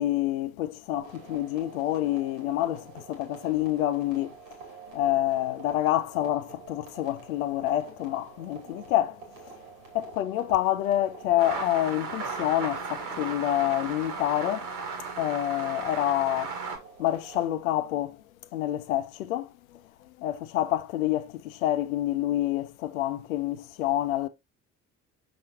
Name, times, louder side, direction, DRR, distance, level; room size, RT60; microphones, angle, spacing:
voice 1, 0.0-4.3 4.9-9.2 9.9-14.7 15.2-16.5 17.0-18.2 18.5-19.5 20.2-24.3, left 13 dB, 80° left, 0.6 m, -27 dB
sound 1, 1.0-17.4, right 5 dB, 85° right, 2.7 m, -48 dB
sound 2, 11.4-16.8, right 4 dB, 70° right, 1.8 m, -35 dB
6.5 x 5.9 x 2.8 m
hypercardioid pair, 50°, 40 cm